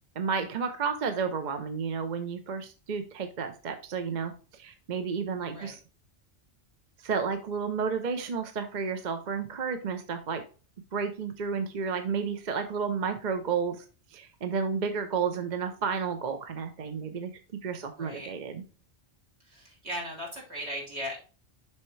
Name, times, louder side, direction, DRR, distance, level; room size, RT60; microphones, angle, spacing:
voice 1, 0.2-5.8 7.0-10.4 10.9-13.8 14.1-17.3 17.6-18.6, right 5 dB, 45° right, 7 dB, 0.8 m, -31 dB
voice 2, 17.8-18.3 19.4-21.2, equal, 75° right, -2 dB, 3.2 m, -38 dB
6.4 x 5.7 x 3.1 m, 0.35 s
omnidirectional pair, 1.1 m